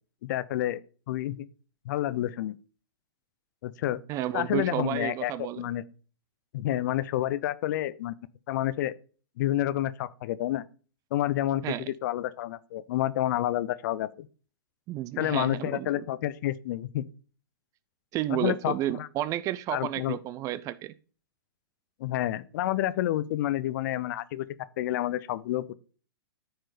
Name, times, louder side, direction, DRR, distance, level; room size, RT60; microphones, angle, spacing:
voice 1, 0.2-0.8 1.1-1.5 1.9-2.6 3.6-4.0 4.3-5.3 5.6-5.8 6.5-8.1 8.5-8.9 9.4-10.6 11.1-11.6 12.0-14.3 15.2-17.1 18.3-19.1 19.7-20.2 22.0-24.5 24.8-25.7, left 13 dB, 50° left, 0.5 m, -29 dB
voice 2, 4.1-5.7 11.6-11.9 14.9-16.1 18.1-20.9, right 13 dB, 25° right, 0.4 m, -31 dB
13.5 x 4.5 x 3.3 m
figure-of-eight pair, 115°, 13 cm